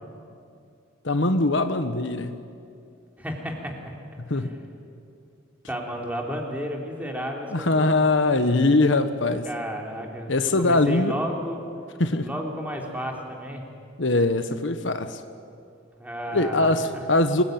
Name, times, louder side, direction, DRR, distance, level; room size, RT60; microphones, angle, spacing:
voice 1, 1.0-2.4 4.2-4.5 7.5-9.5 10.3-11.1 12.0-12.3 14.0-15.2 16.3-17.4, left 2 dB, 65° left, 9 dB, 1.2 m, -22 dB
voice 2, 3.2-3.7 4.3-4.5 5.7-8.0 9.4-11.6 12.2-13.7 16.0-16.7, equal, 10° right, 0 dB, 3.4 m, -32 dB
27.0 x 20.5 x 9.4 m, 2.5 s
head